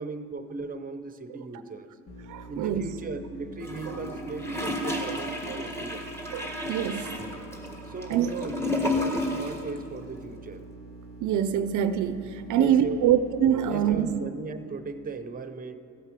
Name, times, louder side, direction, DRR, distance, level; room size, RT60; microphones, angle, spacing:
voice 1, 0.0-1.9 2.5-6.1 7.8-10.7 12.6-13.1 13.7-15.8, right 3 dB, 30° right, 10 dB, 0.8 m, -37 dB
sound 1, 2.1-14.2, right 3 dB, 50° left, 1.7 m, -46 dB
voice 2, 2.3-2.9 5.1-5.2 6.3-7.2 8.1-8.3 11.2-14.2, right 9 dB, 80° right, 11 dB, 0.6 m, -25 dB
Gurgling / Toilet flush, 3.6-9.7 9.9-10.0, left 2 dB, 10° left, 1.8 m, -32 dB
15.0 x 8.1 x 6.0 m, 2.9 s
cardioid pair, 90°, 30 cm